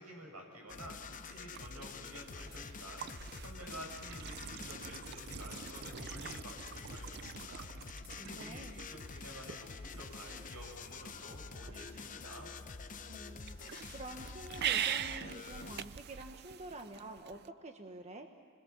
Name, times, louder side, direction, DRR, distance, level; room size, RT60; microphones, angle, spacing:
voice 1, 0.0-3.1 3.4-12.5, right 1 dB, 85° right, 1 dB, 7.4 m, -51 dB
sound 1, 0.7-15.8, left 4 dB, 35° left, 0.8 m, -47 dB
sound 2, 0.7-17.5, right 9 dB, 50° right, 0.5 m, -44 dB
voice 2, 8.3-8.8 13.1-18.3, right 2 dB, 30° right, 5 dB, 1.2 m, -48 dB
29.0 x 21.5 x 7.2 m, 2.3 s
head